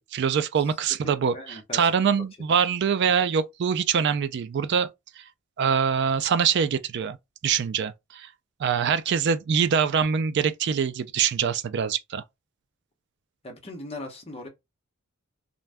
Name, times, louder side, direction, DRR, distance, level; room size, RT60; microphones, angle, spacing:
voice 1, 0.0-4.9 5.2-5.3 5.6-7.2 7.4-8.3 8.6-12.2, right 7 dB, 50° right, 0.3 m, -24 dB
voice 2, 1.3-1.9 13.4-14.5, left 2 dB, 25° left, 0.8 m, -39 dB
2.5 x 2.2 x 3.3 m
head